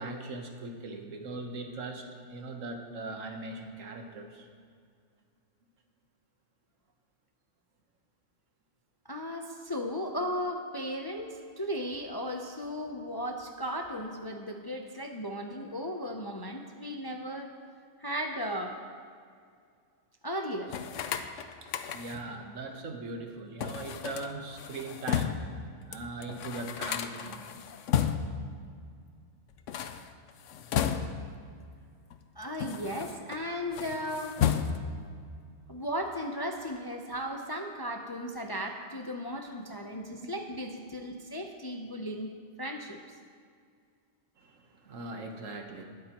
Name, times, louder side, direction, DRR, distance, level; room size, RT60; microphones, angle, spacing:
voice 1, 0.0-4.5 21.6-25.4 25.9-27.5 40.2-40.3 44.4-45.8, right 2 dB, 80° right, 4 dB, 1.5 m, -40 dB
voice 2, 9.0-17.5 18.0-18.8 20.2-20.8 32.4-34.4 35.7-43.0, equal, 30° left, 3 dB, 0.5 m, -36 dB
sound 1, 20.7-22.3 23.6-25.5 25.9-26.0 26.2-28.4 29.5-31.4 32.1-33.4 33.7-35.0, left 8 dB, 80° left, 1.0 m, -33 dB
20.5 x 8.6 x 3.0 m, 2.2 s
omnidirectional pair, 1.3 m